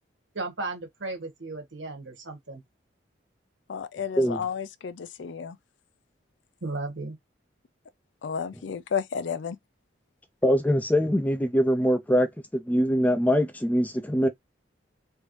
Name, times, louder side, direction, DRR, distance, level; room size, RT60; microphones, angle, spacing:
voice 1, 0.3-2.6 6.6-7.2, right 2 dB, 75° right, 1.5 m, -35 dB
voice 2, 3.7-5.6 8.2-9.6, left 7 dB, 70° left, 0.4 m, -32 dB
voice 3, 10.4-14.3, equal, 10° left, 0.4 m, -23 dB
3.3 x 2.7 x 3.1 m
head